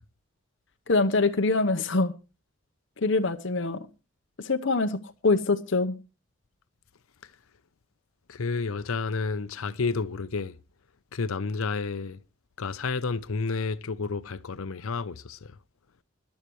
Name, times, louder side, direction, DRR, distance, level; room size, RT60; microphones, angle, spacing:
voice 1, 0.9-2.1 3.0-3.9 4.4-5.9, left 3 dB, 60° left, 0.9 m, -24 dB
voice 2, 8.3-10.6 11.1-12.2 12.6-15.5, left 4 dB, 80° left, 0.7 m, -30 dB
21.0 x 11.5 x 3.1 m
head